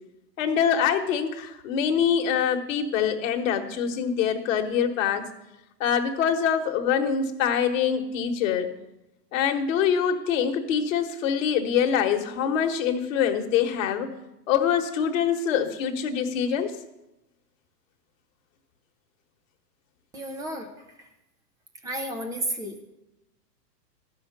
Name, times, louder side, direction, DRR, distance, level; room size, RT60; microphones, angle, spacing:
voice 1, 0.4-5.2 5.8-8.7 9.3-14.1 14.5-16.8, left 8 dB, 50° left, 5 dB, 1.3 m, -24 dB
voice 2, 20.1-20.7 21.8-22.7, right 1 dB, 5° right, 5 dB, 0.5 m, -32 dB
13.0 x 5.8 x 6.8 m, 0.93 s
hypercardioid pair, 135°, 50 cm